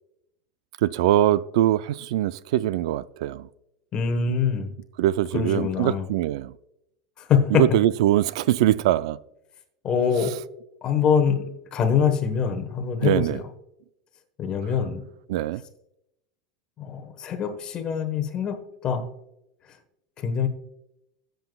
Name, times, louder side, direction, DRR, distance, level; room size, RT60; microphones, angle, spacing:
voice 1, 0.8-3.5 5.0-6.5 7.5-9.2 13.0-13.4 15.3-15.6, right 13 dB, 75° right, 0.3 m, -22 dB
voice 2, 3.9-4.7 5.3-6.1 7.2-7.6 9.8-10.4 10.8-13.4 14.4-15.0 16.8-18.6 18.8-19.1 20.2-20.5, left 7 dB, 30° left, 1.2 m, -24 dB
16.0 x 7.9 x 2.3 m
supercardioid pair, 160°, 3 cm